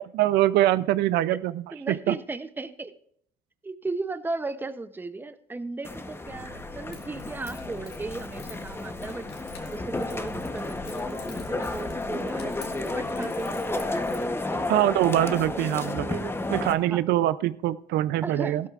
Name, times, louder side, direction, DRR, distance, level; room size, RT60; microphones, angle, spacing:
voice 1, 0.0-2.2 14.7-18.7, right 14 dB, 80° right, 16 dB, 0.4 m, -24 dB
voice 2, 1.7-2.9 3.6-9.3 9.7-14.7 16.9-17.0 18.2-18.7, right 3 dB, 10° right, 12 dB, 0.6 m, -36 dB
sound 1, 5.8-16.7, left 2 dB, 15° left, 0.9 m, -32 dB
Keys jangling, 6.3-14.3, left 4 dB, 70° left, 2.1 m, -46 dB
15.0 x 13.0 x 2.4 m, 0.66 s
cardioid pair, 110°, 17 cm